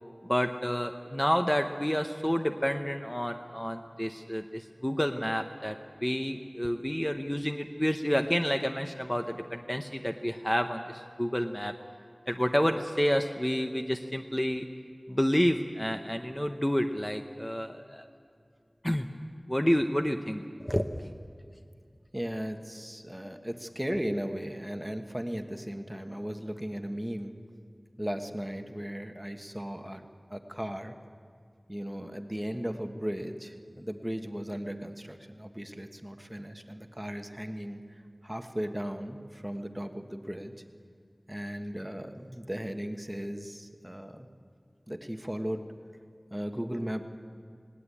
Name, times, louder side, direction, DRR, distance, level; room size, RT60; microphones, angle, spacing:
voice 1, 0.2-5.8 6.0-11.7 12.3-14.7 15.1-18.1 18.8-19.1 19.5-21.0, equal, 15° left, 5 dB, 0.9 m, -29 dB
voice 2, 22.1-27.3 28.0-30.9 31.7-40.5 41.3-44.3 44.9-45.6 46.3-47.1, equal, 10° right, 6 dB, 1.3 m, -36 dB
19.0 x 18.0 x 8.6 m, 2.2 s
wide cardioid pair, 40°, 0 cm